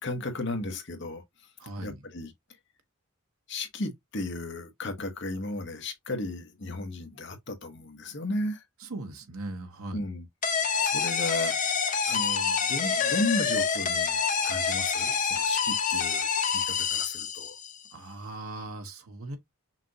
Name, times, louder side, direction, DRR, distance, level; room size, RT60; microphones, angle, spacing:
voice 1, 0.0-1.2 1.8-2.3 3.5-8.6 9.9-10.2 10.8-11.6 12.1-16.3 16.5-17.6, left 2 dB, 55° left, 1.1 m, -34 dB
voice 2, 1.6-2.0 8.8-10.0 17.9-19.4, right 2 dB, 80° right, 1.1 m, -39 dB
sound 1, 10.4-17.8, left 6 dB, 35° left, 0.6 m, -27 dB
5.9 x 2.4 x 2.8 m
head